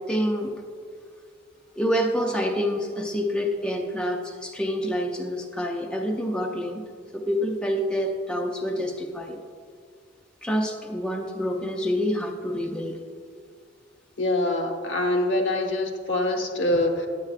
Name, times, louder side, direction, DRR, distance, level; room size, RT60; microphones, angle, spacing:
voice 1, 0.1-0.5 1.8-6.8 7.1-9.4 10.4-13.0, equal, 5° left, 1 dB, 0.4 m, -27 dB
voice 2, 14.2-17.1, left 1 dB, 70° left, 3 dB, 0.9 m, -24 dB
9.6 x 8.2 x 2.4 m, 2.1 s
head